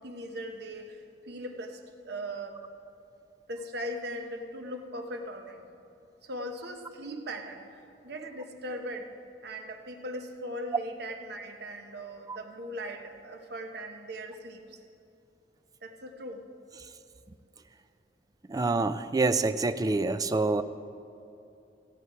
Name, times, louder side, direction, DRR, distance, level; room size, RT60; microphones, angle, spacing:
voice 1, 0.0-1.8 2.0-2.6 3.5-5.7 6.2-9.1 9.4-14.8 15.8-16.4, equal, 65° right, 4 dB, 1.0 m, -39 dB
voice 2, 18.5-20.6, right 3 dB, 20° right, 11 dB, 0.4 m, -26 dB
15.5 x 9.2 x 4.7 m, 2.7 s
head